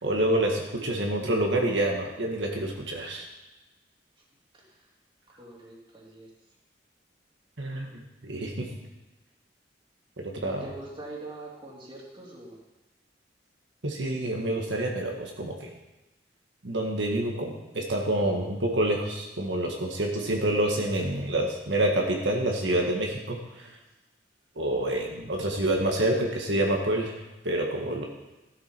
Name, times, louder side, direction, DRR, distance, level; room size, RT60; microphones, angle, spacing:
voice 1, 0.0-3.3 7.6-7.9 8.2-8.7 10.2-10.7 13.8-15.7 16.6-23.7 24.6-27.1 27.4-28.0, right 1 dB, 80° right, 0 dB, 1.8 m, -27 dB
voice 2, 5.3-6.3 10.4-12.6, right 2 dB, 30° right, -3 dB, 3.0 m, -43 dB
14.5 x 12.0 x 4.6 m, 1.0 s
head